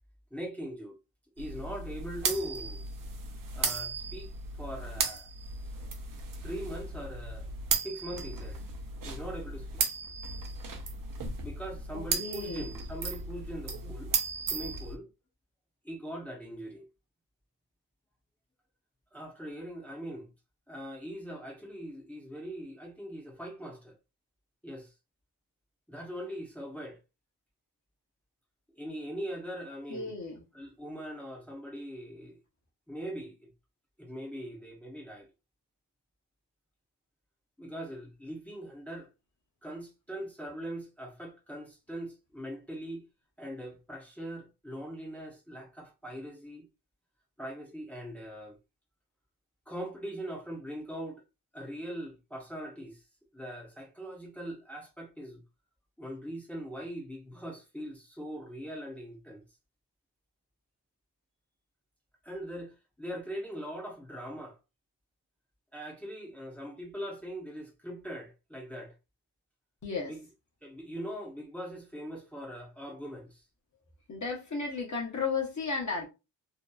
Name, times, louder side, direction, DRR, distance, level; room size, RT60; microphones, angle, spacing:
voice 1, 0.3-1.0 1.4-2.8 3.5-5.3 6.4-7.5 7.8-8.6 9.0-9.8 11.4-14.1 14.5-15.1 15.8-16.9 19.1-20.3 20.7-24.0 24.6-24.9 25.9-27.0 28.7-30.1 30.5-32.4 32.9-33.5 34.0-35.3 37.6-39.1 39.6-43.0 43.4-46.7 47.4-48.6 49.7-51.2 51.5-53.0 53.3-55.4 56.0-59.4 62.2-64.6 65.7-68.9 70.1-70.2 70.6-73.4, equal, 5° left, 0.7 m, -41 dB
sound 1, 1.4-15.0, right 4 dB, 50° right, 0.6 m, -35 dB
voice 2, 11.9-12.7 29.9-30.4 69.8-70.1 74.1-76.1, left 4 dB, 40° left, 0.8 m, -34 dB
2.7 x 2.2 x 2.3 m
wide cardioid pair, 115°, 42 cm